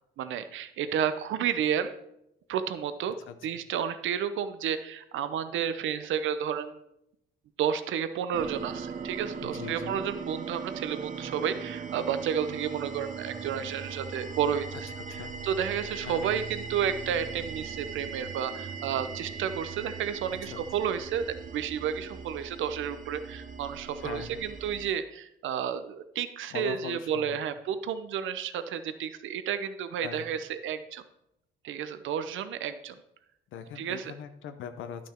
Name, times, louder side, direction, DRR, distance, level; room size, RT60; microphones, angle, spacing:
voice 1, 0.2-1.9 2.5-3.2 3.4-6.8 7.6-14.9 15.4-31.0 31.6-33.0 33.8-34.1, right 8 dB, 80° right, 12 dB, 0.7 m, -31 dB
voice 2, 3.3-3.6 9.4-10.0 15.1-15.3 16.0-16.3 20.3-20.9 24.0-24.4 26.5-27.5 30.0-30.3 33.5-35.1, left 8 dB, 80° left, 9 dB, 0.8 m, -41 dB
sound 1, 8.3-24.9, right 5 dB, 40° right, 0.7 m, -39 dB
10.5 x 6.2 x 4.4 m, 0.81 s
cardioid pair, 90°, 20 cm